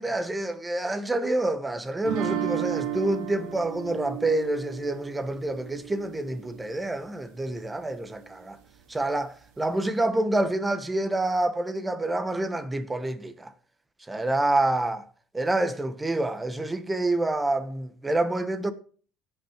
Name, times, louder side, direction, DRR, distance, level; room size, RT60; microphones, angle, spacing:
voice 1, 0.0-8.6 8.9-13.5 14.1-15.1 15.3-18.7, right 2 dB, 15° right, 1.2 m, -27 dB
sound 1, 2.1-7.0, right 10 dB, 75° right, 2.2 m, -34 dB
16.5 x 5.8 x 4.4 m
supercardioid pair, 85°, 0 cm